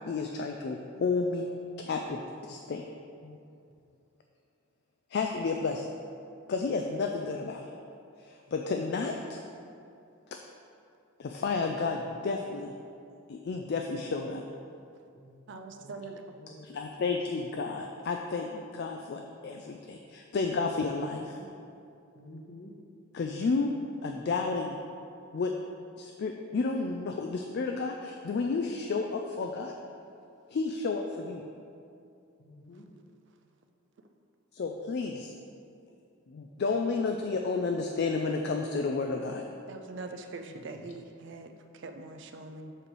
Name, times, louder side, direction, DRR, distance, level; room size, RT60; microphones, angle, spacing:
voice 1, 0.1-1.5 1.8-2.9 3.2-3.4 5.1-5.9 6.5-7.7 8.2-9.4 11.2-12.7 13.3-14.4 16.6-21.4 23.1-23.7 24.0-24.8 25.3-25.5 26.0-29.7 30.5-31.4 34.5-35.3 36.3-39.4, left 4 dB, 50° left, 3 dB, 0.3 m, -31 dB
voice 2, 15.5-16.2 39.7-42.8, right 3 dB, 60° right, 6 dB, 0.5 m, -43 dB
voice 3, 21.1-21.5 22.1-22.7 32.4-32.9 40.4-40.9, left 1 dB, 75° left, -1 dB, 1.1 m, -50 dB
7.4 x 3.3 x 6.0 m, 2.6 s
head